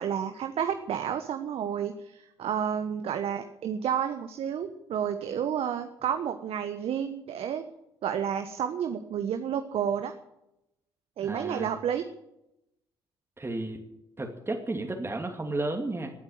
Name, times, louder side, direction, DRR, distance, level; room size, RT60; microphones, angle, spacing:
voice 1, 0.0-7.6 8.0-10.1 11.2-12.0, right 8 dB, 55° right, 8 dB, 1.2 m, -30 dB
voice 2, 11.2-11.7 13.4-13.8 14.2-16.1, right 2 dB, 20° right, 2 dB, 2.7 m, -33 dB
19.5 x 9.5 x 7.6 m, 0.86 s
figure-of-eight pair, 45°, 12 cm